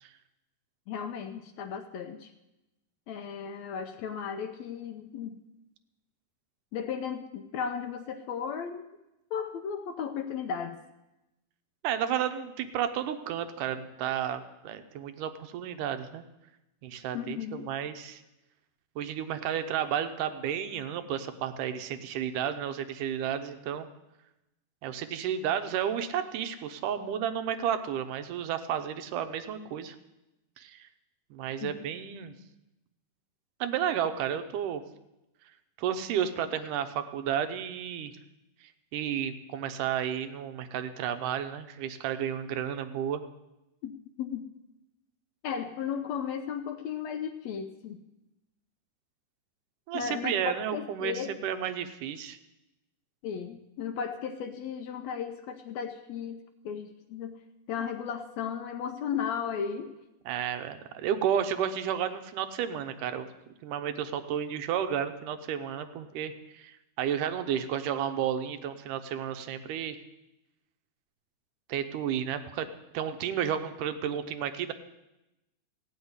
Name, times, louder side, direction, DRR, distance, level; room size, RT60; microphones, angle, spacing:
voice 1, 0.9-2.3 3.1-5.4 6.7-8.8 9.3-10.8 17.1-17.6 31.6-31.9 43.8-43.9 44.2-44.4 45.4-48.0 49.9-51.3 53.2-57.4 57.7-59.9, left 7 dB, 75° left, 7 dB, 1.7 m, -35 dB
voice 2, 11.8-16.2 16.8-18.2 19.0-23.9 24.8-30.0 30.6-30.9 31.3-32.4 33.6-34.8 35.8-38.1 38.9-43.2 49.9-52.4 60.3-63.3 63.6-70.0 71.7-72.7 72.9-74.7, right 9 dB, 80° right, 9 dB, 2.4 m, -32 dB
16.0 x 6.4 x 9.4 m, 0.96 s
omnidirectional pair, 3.7 m